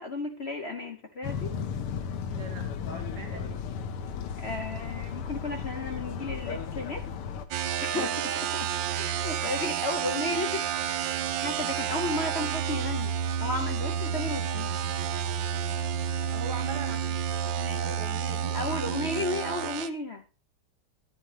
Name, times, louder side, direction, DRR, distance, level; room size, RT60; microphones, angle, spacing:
voice 1, 0.0-1.5 4.4-7.0 7.7-8.1 8.4-10.7 11.4-13.1 13.4-14.8 18.5-20.2, left 2 dB, 65° left, 3 dB, 0.6 m, -34 dB
sound 1, 1.2-7.5, left 6 dB, 85° left, 1.9 m, -35 dB
voice 2, 2.3-3.6 7.9-8.3 16.2-18.6, right 3 dB, 55° right, 4 dB, 1.6 m, -41 dB
sound 2, 7.5-19.9, right 8 dB, 70° right, 1.2 m, -30 dB
13.0 x 8.8 x 3.3 m, 0.33 s
omnidirectional pair, 2.4 m